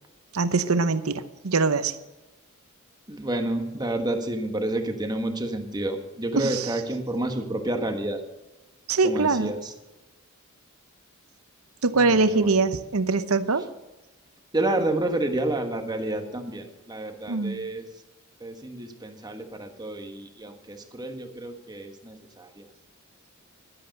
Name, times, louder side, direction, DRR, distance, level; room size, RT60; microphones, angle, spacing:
voice 1, 0.3-2.0 6.4-6.6 8.9-9.5 11.8-13.6 17.3-17.7, right 3 dB, 75° right, 12 dB, 0.8 m, -23 dB
voice 2, 3.1-8.2 9.0-9.7 11.9-12.5 14.5-17.9 18.4-22.7, right 1 dB, 20° right, 5 dB, 1.3 m, -30 dB
12.0 x 10.0 x 6.6 m, 1.1 s
head